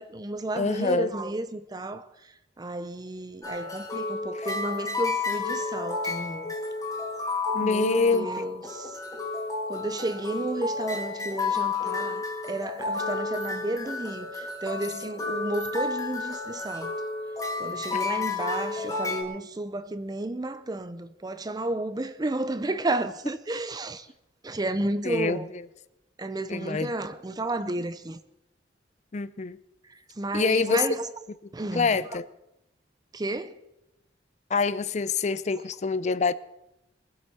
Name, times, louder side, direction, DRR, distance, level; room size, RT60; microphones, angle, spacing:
voice 1, 0.0-6.5 7.6-9.0 9.7-17.0 17.6-24.1 24.4-25.5 26.2-28.2 29.8-31.1 31.5-32.2 33.1-33.6, right 2 dB, 20° right, 0.6 m, -32 dB
voice 2, 0.5-1.1 7.5-8.3 17.9-18.0 25.0-25.4 26.5-26.9 29.1-29.6 30.3-30.8 31.7-32.3 34.5-36.3, left 4 dB, 40° left, 0.5 m, -25 dB
sound 1, 3.4-19.2, left 4 dB, 20° left, 2.1 m, -31 dB
21.5 x 7.9 x 5.7 m
head